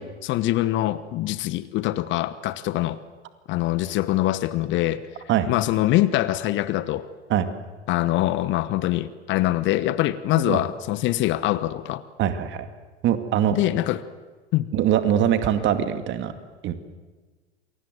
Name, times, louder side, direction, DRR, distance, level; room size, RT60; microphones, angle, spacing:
voice 1, 0.0-3.0 3.5-5.0 5.5-7.1 7.9-12.0 13.5-14.0 14.5-14.7, left 15 dB, 35° left, 15 dB, 1.1 m, -24 dB
voice 2, 12.2-12.7 13.0-13.6 14.7-16.3 16.6-16.7, right 10 dB, 35° right, 9 dB, 2.3 m, -22 dB
28.0 x 23.5 x 7.9 m, 1.4 s
figure-of-eight pair, 90°, 34 cm